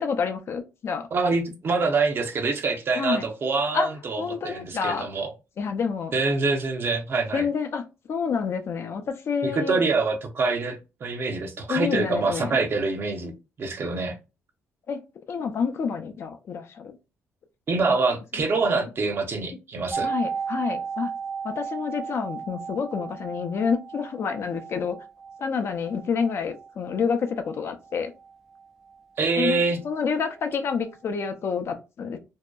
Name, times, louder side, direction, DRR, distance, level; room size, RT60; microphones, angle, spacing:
voice 1, 0.0-1.1 3.0-3.3 3.7-3.9 4.2-5.1 5.6-6.1 7.3-7.8 8.1-9.8 11.7-12.6 14.9-15.0 15.3-17.0 18.8-18.9 20.0-21.1 21.4-25.0 25.4-28.1 29.4-29.6 29.8-32.2, left 6 dB, 55° left, 0.5 m, -28 dB
voice 2, 1.1-5.3 6.1-7.5 9.4-13.3 13.6-14.1 17.7-20.1 29.2-29.8, right 4 dB, 45° right, 0.6 m, -25 dB
sound 1, 19.9-29.7 29.9-30.0, right 6 dB, 10° right, 0.4 m, -35 dB
2.7 x 2.1 x 2.2 m
cardioid pair, 80°, 5 cm